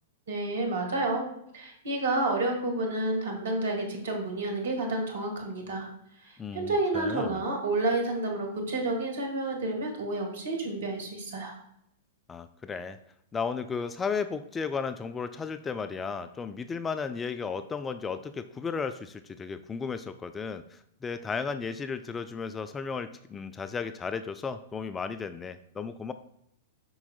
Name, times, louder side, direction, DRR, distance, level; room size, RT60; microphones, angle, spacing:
voice 1, 0.3-1.3 1.5-5.9 6.2-11.6, right 2 dB, 60° right, 2 dB, 1.8 m, -30 dB
voice 2, 6.4-7.4 12.3-13.0 13.3-26.1, left 5 dB, 15° left, 11 dB, 0.3 m, -34 dB
7.9 x 5.8 x 2.3 m, 0.77 s
figure-of-eight pair, 100°, 0 cm